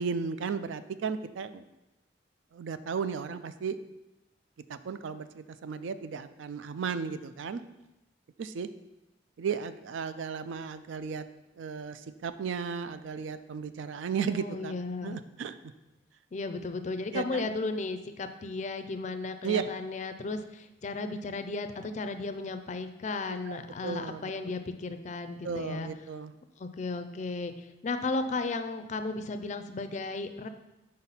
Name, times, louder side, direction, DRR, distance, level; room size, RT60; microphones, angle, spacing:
voice 1, 0.0-1.6 2.5-3.8 4.7-7.6 8.4-8.7 9.4-11.2 11.6-14.7 15.0-15.5 17.1-17.4 19.4-19.7 23.5-24.3 25.4-26.3, right 6 dB, 85° right, 12 dB, 0.4 m, -34 dB
voice 2, 14.3-15.2 16.3-25.9 26.6-27.5 27.8-30.5, left 3 dB, 40° left, 8 dB, 0.4 m, -35 dB
5.2 x 4.0 x 5.6 m, 0.98 s
head